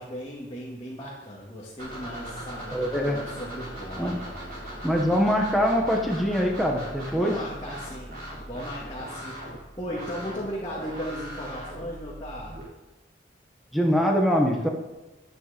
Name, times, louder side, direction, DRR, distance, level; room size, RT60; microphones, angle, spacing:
voice 1, 0.0-4.5 7.1-8.1 8.5-12.6, equal, 25° left, -7 dB, 2.4 m, -37 dB
sound 1, 1.8-12.6, equal, 50° right, 4.4 m, -39 dB
voice 2, 2.7-3.2 4.0-4.2 4.8-7.3 13.7-14.7, equal, ahead, 0 dB, 1.5 m, -23 dB
11.5 x 9.3 x 5.3 m, 1.1 s
head